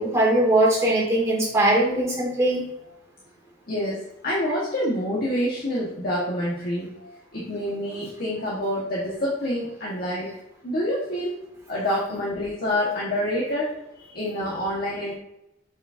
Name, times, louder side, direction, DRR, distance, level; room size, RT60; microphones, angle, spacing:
voice 1, 0.0-2.6, right 1 dB, 15° right, -5 dB, 2.2 m, -20 dB
voice 2, 3.7-10.3 10.6-11.3 11.7-15.1, left 1 dB, 55° left, -6 dB, 1.4 m, -27 dB
7.2 x 5.4 x 2.6 m, 0.84 s
head